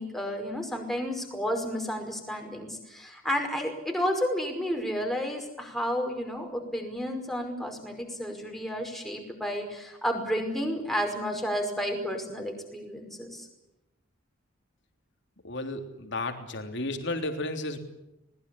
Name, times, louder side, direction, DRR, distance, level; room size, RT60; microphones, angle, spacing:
voice 1, 0.0-13.5, equal, ahead, 3 dB, 5.3 m, -31 dB
voice 2, 15.4-17.8, left 2 dB, 60° left, 5 dB, 3.4 m, -33 dB
21.5 x 20.5 x 10.0 m, 0.89 s
head